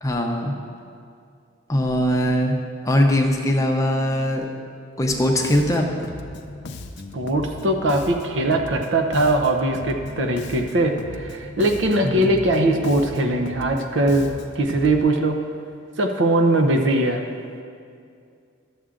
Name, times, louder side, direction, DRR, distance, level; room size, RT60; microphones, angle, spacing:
voice 1, 0.0-0.5 1.7-2.6 2.8-4.5 5.0-5.9 12.0-12.3, equal, 15° left, 1 dB, 0.7 m, -21 dB
Bass guitar, 5.1-15.0, left 2 dB, 55° left, 0.5 m, -36 dB
voice 2, 7.1-14.3 14.6-15.4 16.0-17.2, right 1 dB, 60° right, 4 dB, 0.8 m, -21 dB
12.0 x 7.2 x 3.8 m, 2.3 s
head